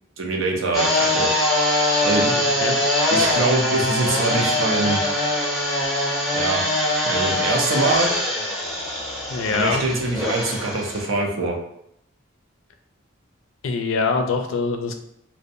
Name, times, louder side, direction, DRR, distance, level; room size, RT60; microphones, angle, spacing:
voice 1, 0.2-1.3 2.0-2.3 3.1-5.0 6.3-6.6 7.0-8.1 9.5-11.6, right 3 dB, 75° right, 1 dB, 0.5 m, -23 dB
sound 1, 0.7-11.1, left 1 dB, ahead, 0.6 m, -22 dB
voice 2, 2.2-2.8 9.3-9.8 13.6-14.9, left 4 dB, 75° left, 6 dB, 0.4 m, -24 dB
2.5 x 2.1 x 2.6 m, 0.77 s
head